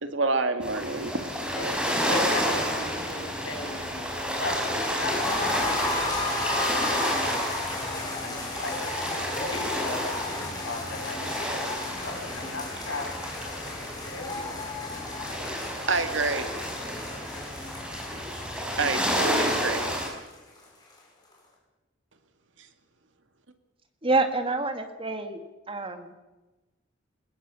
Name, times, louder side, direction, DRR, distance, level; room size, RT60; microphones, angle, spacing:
voice 1, 0.0-1.1 15.3-15.5 15.9-16.5 18.8-19.9, right 3 dB, 75° right, 8 dB, 2.2 m, -28 dB
sound 1, 0.6-20.1, equal, 5° right, 5.4 m, -31 dB
voice 2, 2.0-6.2 6.5-13.5 13.8-14.4, left 2 dB, 70° left, 1 dB, 7.7 m, -37 dB
sound 2, 4.8-20.6 20.9-21.0 21.3-21.4, left 2 dB, 20° left, 6.2 m, -35 dB
voice 3, 24.0-25.4 25.7-26.1, right 3 dB, 30° right, 7 dB, 1.9 m, -27 dB
22.0 x 21.0 x 7.0 m, 1.1 s
head